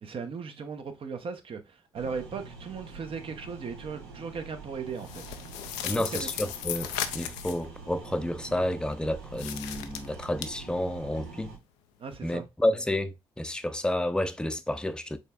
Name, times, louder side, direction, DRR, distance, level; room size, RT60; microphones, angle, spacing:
voice 1, 0.0-5.4 5.9-6.3 12.0-12.5, right 5 dB, 50° right, 0.8 m, -37 dB
sound 1, 1.9-11.6, right 4 dB, 85° right, 0.9 m, -46 dB
sound 2, 5.0-7.7 9.3-10.5, left 11 dB, 80° left, 0.4 m, -36 dB
voice 2, 5.8-11.5 12.2-15.2, left 1 dB, 5° left, 0.6 m, -30 dB
5.2 x 3.2 x 2.3 m
hypercardioid pair, 45°, 12 cm